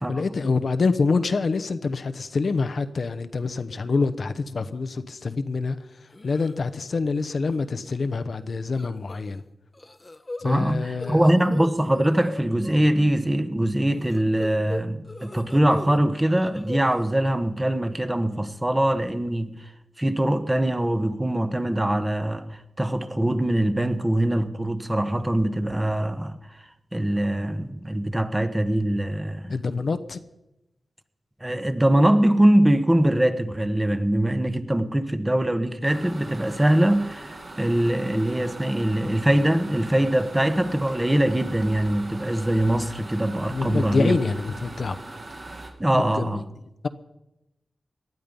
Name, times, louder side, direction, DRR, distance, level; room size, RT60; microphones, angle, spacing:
voice 1, 0.1-5.8 6.2-9.4 10.4-11.2 29.5-30.2 43.5-45.0 45.9-46.4, left 4 dB, 65° left, 0.9 m, -26 dB
sound 1, 6.1-6.5 6.9-7.2 7.5-7.6 8.8-9.4 9.7-12.8 13.9-16.0 16.2-17.1, left 2 dB, 30° left, 1.0 m, -38 dB
voice 2, 10.4-19.5 20.0-26.4 26.9-29.5 31.4-44.2 45.8-46.4, right 1 dB, 15° right, 1.3 m, -22 dB
sound 2, 35.8-45.7, right 2 dB, 50° right, 2.9 m, -40 dB
19.0 x 12.0 x 5.4 m
cardioid pair, 60°, 0 cm